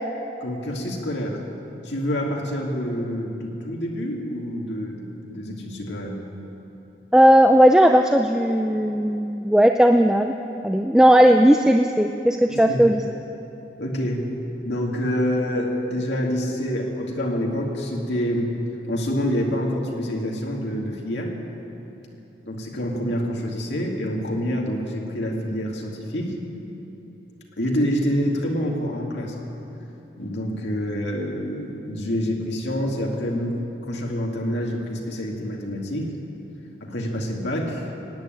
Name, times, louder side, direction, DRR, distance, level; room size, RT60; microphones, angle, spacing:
voice 1, 0.4-1.4 1.8-6.2 12.5-12.8 13.8-14.4 14.6-18.5 18.9-21.3 22.5-26.4 27.6-29.5 30.2-36.1 36.8-37.9, equal, 90° left, 0 dB, 2.3 m, -27 dB
voice 2, 7.1-10.3 10.6-13.0, equal, 5° right, 4 dB, 0.4 m, -16 dB
16.5 x 9.5 x 9.1 m, 3.0 s
head